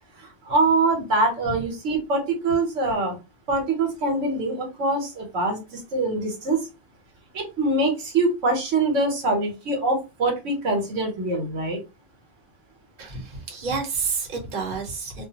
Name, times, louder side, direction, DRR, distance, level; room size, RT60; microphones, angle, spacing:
voice 1, 0.2-3.2 3.5-6.6 7.3-11.8, right 2 dB, 75° right, 1.1 m, -24 dB
voice 2, 13.0-15.3, right 4 dB, 45° right, 0.9 m, -29 dB
2.3 x 2.3 x 2.7 m
omnidirectional pair, 1.3 m